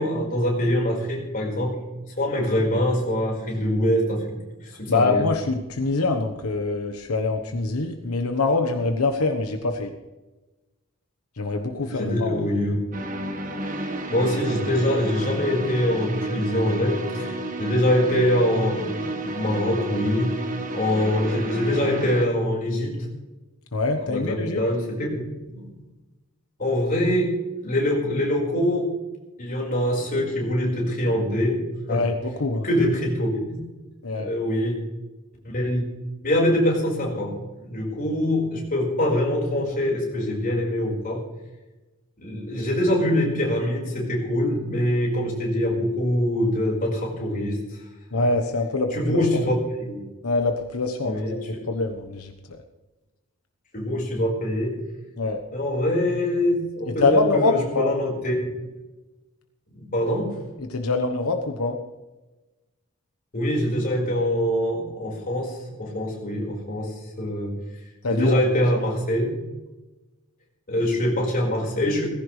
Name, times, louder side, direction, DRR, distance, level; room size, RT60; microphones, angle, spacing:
voice 1, 0.0-1.8 2.2-5.3 11.8-12.7 14.1-20.4 20.7-23.1 24.1-25.7 26.6-28.9 29.4-31.6 31.9-32.0 32.6-33.6 34.1-34.8 35.5-35.9 36.2-41.3 42.2-47.6 48.1-48.2 48.9-50.1 51.0-51.5 53.7-54.8 55.5-58.5 59.7-60.4 63.3-67.6 68.1-69.4 70.7-72.0, left 1 dB, 40° left, -2 dB, 4.9 m, -24 dB
voice 2, 4.9-9.9 11.4-12.4 23.7-24.6 31.9-32.7 34.0-34.3 48.1-49.4 50.2-51.4 51.7-52.6 55.2-55.4 56.9-57.9 60.6-61.8 68.0-68.4, left 3 dB, 90° left, 5 dB, 1.2 m, -24 dB
sound 1, 12.9-22.3, right 1 dB, 40° right, 1.4 m, -31 dB
18.5 x 15.5 x 3.3 m, 1.1 s
head